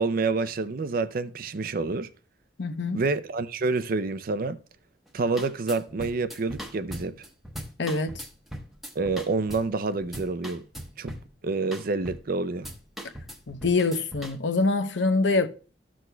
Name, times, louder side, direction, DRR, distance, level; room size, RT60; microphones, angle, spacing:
voice 1, 0.0-2.1 2.9-4.6 5.1-7.2 9.0-10.6 11.0-11.1 11.4-12.7, right 3 dB, 50° right, 0.5 m, -28 dB
voice 2, 2.6-3.0 7.8-8.1 13.5-15.5, left 3 dB, 80° left, 0.8 m, -24 dB
sound 1, 5.1-5.2 5.4-9.7 10.0-11.3 11.7-12.3 12.6-14.4, equal, ahead, 0.9 m, -40 dB
13.5 x 6.3 x 2.2 m
head